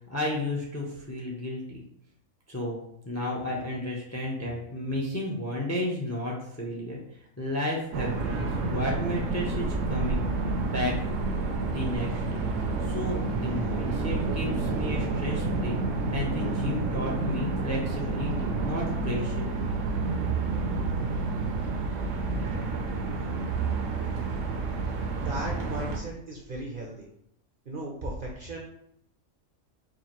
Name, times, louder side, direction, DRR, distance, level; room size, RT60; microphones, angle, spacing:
voice 1, 0.1-1.8 2.5-2.8 3.0-7.0 7.4-11.0 11.6-15.8 16.1-19.5, left 1 dB, 20° left, -2 dB, 0.5 m, -33 dB
sound 1, 7.9-26.0, right 3 dB, 70° right, 0.9 m, -29 dB
voice 2, 25.2-27.1 27.7-28.6, right 1 dB, 50° right, -1 dB, 0.7 m, -36 dB
4.8 x 2.5 x 2.9 m, 0.73 s
omnidirectional pair, 1.4 m